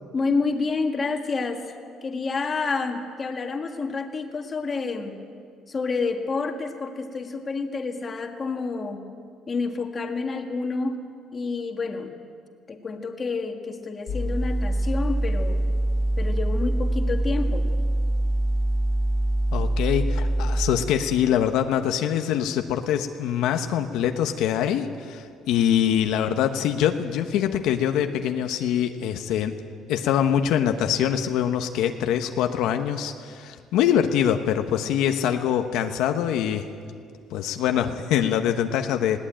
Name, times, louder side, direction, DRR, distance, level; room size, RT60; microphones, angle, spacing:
voice 1, 0.1-1.7 2.0-5.1 5.7-9.0 9.5-11.0 11.3-12.1 12.7-15.6 16.2-17.7, left 4 dB, 25° left, 4 dB, 1.8 m, -29 dB
sound 1, 14.1-20.7, right 1 dB, 50° left, 1.5 m, -24 dB
voice 2, 19.5-29.5 29.9-36.7 37.3-39.2, left 9 dB, 75° left, 6 dB, 1.1 m, -24 dB
20.5 x 17.5 x 8.9 m, 2.2 s
cardioid pair, 150°, 0 cm